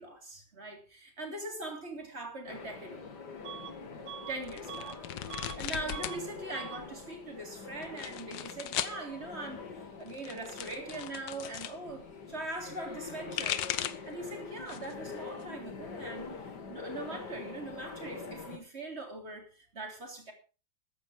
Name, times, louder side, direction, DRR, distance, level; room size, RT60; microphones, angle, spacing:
voice 1, 0.0-3.1 4.3-9.7 10.0-13.6 14.1-16.3 16.7-20.3, right 2 dB, 35° right, 3 dB, 3.6 m, -41 dB
sound 1, 2.5-18.6, left 4 dB, 70° left, 2.4 m, -45 dB
Bus / Alarm, 3.4-3.8 4.1-5.6 5.9-6.2 6.5-6.9, right 10 dB, 70° right, 1.5 m, -44 dB
sound 2, 4.4-6.2 6.5-7.2 7.8-9.0 10.0-11.8 13.0-14.1 14.6-15.0 15.4-16.4, left 11 dB, 90° left, 1.6 m, -38 dB
14.0 x 10.5 x 4.8 m, 0.35 s
omnidirectional pair, 1.9 m